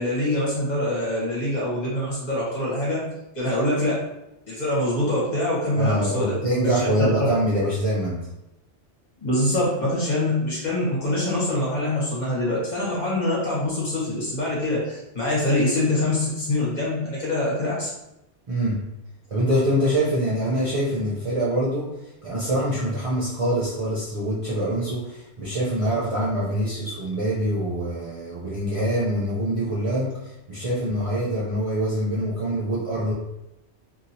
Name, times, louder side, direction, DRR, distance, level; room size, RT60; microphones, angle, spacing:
voice 1, 0.0-3.1 3.3-4.0 4.5-6.4 6.8-7.3 9.2-17.9, left 1 dB, 40° left, -7 dB, 1.1 m, -24 dB
voice 2, 5.8-8.3 18.5-18.9 19.3-22.0 22.2-33.1, right 1 dB, 40° right, -8 dB, 0.5 m, -24 dB
2.8 x 2.7 x 2.6 m, 0.89 s
omnidirectional pair, 1.2 m